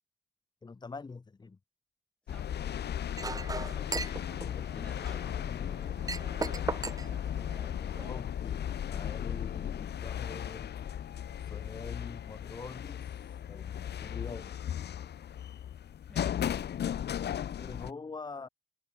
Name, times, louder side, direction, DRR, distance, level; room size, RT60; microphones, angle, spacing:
voice 1, 0.6-1.6 4.4-4.9 5.2-5.9 8.1-10.7 11.4-13.1 13.5-13.7 14.0-14.5 17.6-18.5, left 4 dB, 20° left, 1.9 m, -45 dB
sound 1, 2.3-17.9, left 10 dB, 60° left, 2.1 m, -36 dB
voice 2, 2.3-2.6 4.7-5.6 16.1-16.6, left 1 dB, 5° left, 5.8 m, -56 dB
Chink clink, 3.1-8.1, right 4 dB, 20° right, 0.8 m, -39 dB
wide cardioid pair, 165°, 20 cm